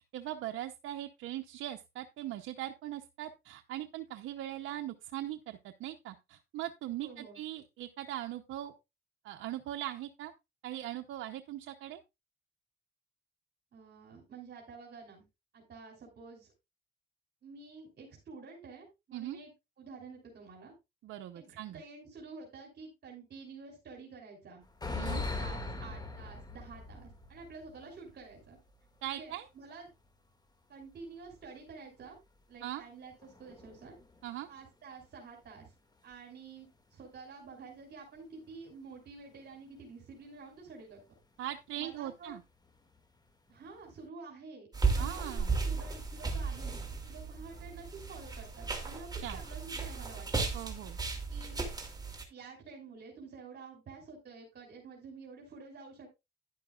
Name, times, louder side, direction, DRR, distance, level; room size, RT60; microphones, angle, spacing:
voice 1, 0.1-8.7 9.2-10.3 10.6-12.0 19.1-19.4 21.0-21.8 24.9-25.2 29.0-29.5 32.6-32.9 34.2-34.5 41.4-42.4 45.0-45.5 49.2-49.4 50.5-51.0, right 13 dB, 85° right, 5 dB, 0.7 m, -40 dB
voice 2, 7.0-7.4 13.7-15.2 15.5-16.5 17.4-19.5 19.8-20.7 21.3-24.6 25.1-28.6 29.0-29.9 30.7-32.2 32.5-34.0 34.5-35.7 36.0-41.0 41.8-42.4 43.5-44.7 44.9-46.7 47.0-50.5 51.0-51.6 52.3-56.1, right 4 dB, 55° right, -1 dB, 3.3 m, -50 dB
sound 1, 24.6-29.3 29.5-29.6 30.8-31.0 33.2-34.5 35.4-35.7 36.1-36.2 36.6-36.7 38.6-38.7 39.4-39.5 41.9-42.1 42.6-43.0 43.5-44.1, left 3 dB, 20° left, 2.0 m, -41 dB
sound 2, 44.7-52.2, right 4 dB, 20° right, 2.7 m, -35 dB
10.5 x 10.5 x 2.4 m, 0.23 s
cardioid pair, 90°, 20 cm